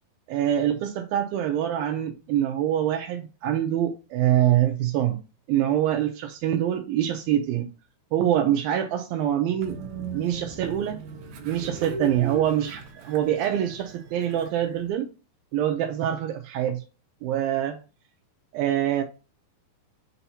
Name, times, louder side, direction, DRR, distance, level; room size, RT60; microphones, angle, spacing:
voice 1, 0.3-5.2 5.5-7.7 8.1-9.8 10.1-11.0 11.4-15.1 15.5-16.8 17.2-17.8 18.5-19.0, right 11 dB, 90° right, 2.1 m, -25 dB
Train, 9.6-14.9, right 4 dB, 75° right, 1.7 m, -39 dB
7.9 x 2.8 x 5.7 m
omnidirectional pair, 5.0 m